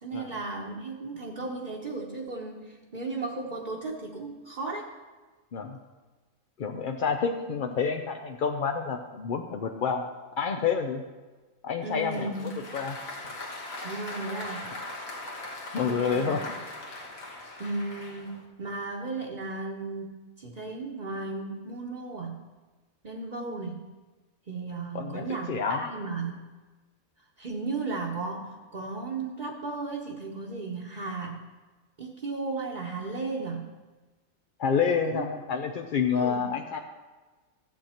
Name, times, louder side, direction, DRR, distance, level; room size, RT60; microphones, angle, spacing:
voice 1, 0.0-4.9 7.5-7.6 11.8-12.5 13.8-14.7 15.8-16.4 17.6-22.4 23.0-23.9 24.5-26.5 27.4-31.4 32.0-33.7 35.1-35.2 36.1-36.5, right 3 dB, 35° right, -2 dB, 1.1 m, -35 dB
voice 2, 6.6-10.1 10.4-11.0 11.6-13.0 15.7-16.4 24.9-25.8 34.6-36.8, left 6 dB, 55° left, 4 dB, 0.5 m, -28 dB
Applause, 12.1-18.4, left 2 dB, 75° left, 1.9 m, -40 dB
14.0 x 7.9 x 4.3 m, 1.3 s
omnidirectional pair, 1.5 m